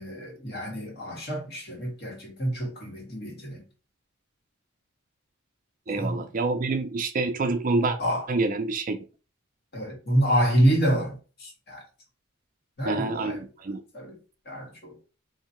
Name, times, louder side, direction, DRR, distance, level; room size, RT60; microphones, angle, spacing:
voice 1, 0.0-3.6 5.9-6.3 8.0-8.2 9.7-11.8 12.8-13.4 13.9-14.2 14.4-15.0, equal, 50° left, 1.6 m, -27 dB
voice 2, 5.9-8.0 8.3-9.0 12.8-13.8, right 3 dB, 40° right, 0.4 m, -27 dB
2.7 x 2.7 x 4.3 m
head